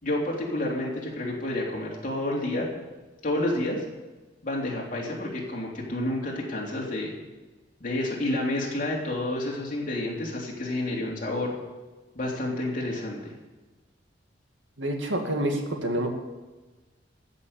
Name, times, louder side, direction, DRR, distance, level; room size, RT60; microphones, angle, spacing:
voice 1, 0.0-2.7 3.2-3.8 4.4-7.1 7.8-11.5 12.1-13.3, left 1 dB, 45° left, -2 dB, 3.4 m, -29 dB
voice 2, 14.8-16.1, right 1 dB, 90° right, 3 dB, 2.3 m, -27 dB
14.0 x 7.1 x 8.7 m, 1.2 s
head